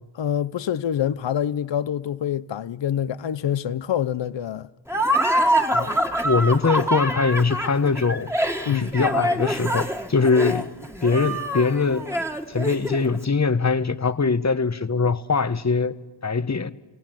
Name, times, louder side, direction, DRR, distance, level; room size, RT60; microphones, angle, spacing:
voice 1, 0.1-4.7 8.7-9.0 10.4-10.6, left 9 dB, 75° left, 0.7 m, -26 dB
Laughter, 4.9-13.2, right 1 dB, 5° right, 2.0 m, -25 dB
voice 2, 6.2-8.3 8.7-10.7 11.0-12.1 12.5-16.0 16.2-16.7, left 4 dB, 35° left, 1.1 m, -22 dB
28.5 x 16.5 x 9.0 m
cardioid pair, 45°, 44 cm